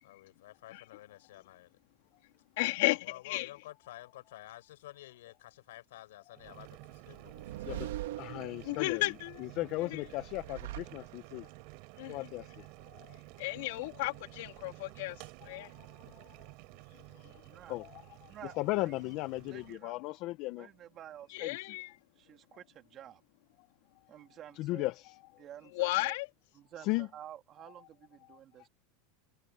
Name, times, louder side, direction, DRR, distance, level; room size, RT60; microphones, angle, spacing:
voice 1, 0.0-1.8 2.8-8.0 16.0-16.2, left 15 dB, 85° left, 6.5 m, -51 dB
voice 2, 2.6-3.5 8.6-9.4 9.9-10.0 12.0-12.3 13.4-15.7 21.3-22.0 25.7-26.3, left 21 dB, 65° left, 2.9 m, -34 dB
Boiling, 6.3-19.8, right 26 dB, 50° right, 3.7 m, -52 dB
sound 1, 7.0-9.0 10.0-11.5, right 15 dB, 85° right, 1.5 m, -42 dB
voice 3, 8.2-11.5 12.1-13.2 15.5-16.3 17.7-20.7 21.4-21.6 24.5-25.4 26.8-27.1 28.3-28.4, left 19 dB, 40° left, 0.7 m, -37 dB
voice 4, 17.4-17.8 18.3-19.1 19.4-19.9 20.6-21.5 22.2-23.2 24.1-24.9 25.4-26.1 26.5-28.7, right 11 dB, 30° right, 3.1 m, -51 dB
supercardioid pair, 160°, 0 cm